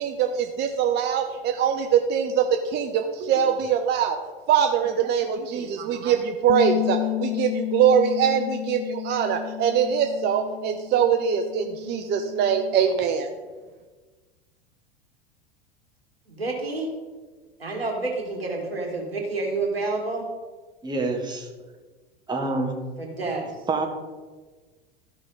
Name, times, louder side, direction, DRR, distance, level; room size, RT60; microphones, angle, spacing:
voice 1, 0.0-4.2 4.5-13.3, right 8 dB, 35° right, 5 dB, 0.7 m, -23 dB
sound 1, 6.5-12.7, left 18 dB, 50° left, 0.4 m, -32 dB
voice 2, 16.3-16.9 17.6-20.2 23.0-23.6, right 3 dB, 90° right, 1 dB, 2.0 m, -29 dB
voice 3, 20.8-21.5 22.3-22.7 23.7-23.9, right 3 dB, 15° right, 2 dB, 1.5 m, -26 dB
13.5 x 5.5 x 4.1 m, 1.3 s
figure-of-eight pair, 85°, 29 cm